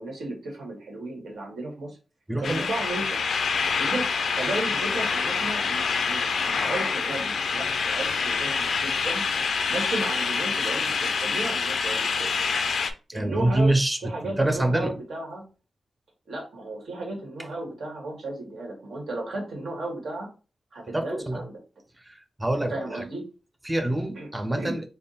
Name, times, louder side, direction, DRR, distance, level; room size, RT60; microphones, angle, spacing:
voice 1, 0.0-2.0 2.4-3.2 3.8-4.1 4.3-8.5 8.8-9.2 9.7-12.3 13.1-13.7 14.0-15.4 16.3-20.3 20.7-21.6 22.7-23.2 24.1-24.3 24.6-24.8, right 2 dB, 75° right, 1.6 m, -34 dB
voice 2, 2.3-2.7 13.1-14.0 14.2-14.9 20.9-21.4 22.1-22.8 23.7-24.8, right 1 dB, 10° right, 0.4 m, -25 dB
sound 1, 2.4-12.9, left 5 dB, 65° left, 0.4 m, -26 dB
3.6 x 2.2 x 3.9 m
wide cardioid pair, 160°, 0 cm